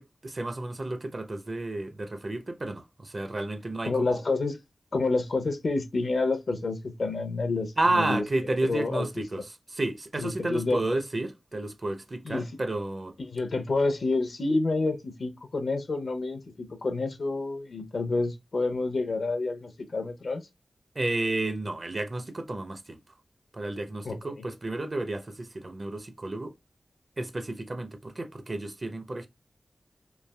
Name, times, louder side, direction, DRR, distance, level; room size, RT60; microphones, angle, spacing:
voice 1, 0.0-4.2 7.8-13.1 20.9-23.0 23.5-26.5 27.2-29.3, right 2 dB, 45° right, 0.5 m, -31 dB
voice 2, 3.8-4.6 4.9-8.2 8.6-9.2 10.2-10.8 12.3-12.5 13.2-20.4 24.0-24.2, left 3 dB, 75° left, 0.6 m, -28 dB
3.2 x 2.5 x 2.2 m
wide cardioid pair, 60°, 0 cm